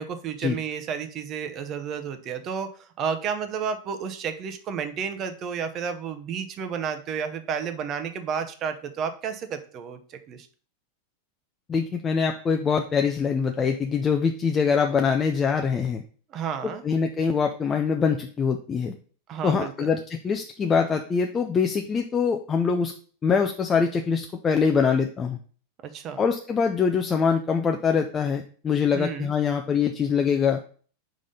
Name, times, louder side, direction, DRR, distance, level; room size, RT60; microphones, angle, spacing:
voice 1, 0.0-10.5 16.3-16.8 19.3-19.9 25.8-26.2 28.9-29.3, right 7 dB, 40° right, 9 dB, 0.9 m, -31 dB
voice 2, 11.7-16.0 16.8-18.9 19.4-22.9 23.2-25.4 26.2-30.6, left 6 dB, 25° left, 4 dB, 0.6 m, -24 dB
4.9 x 3.8 x 5.5 m, 0.42 s
hypercardioid pair, 95°, 0 cm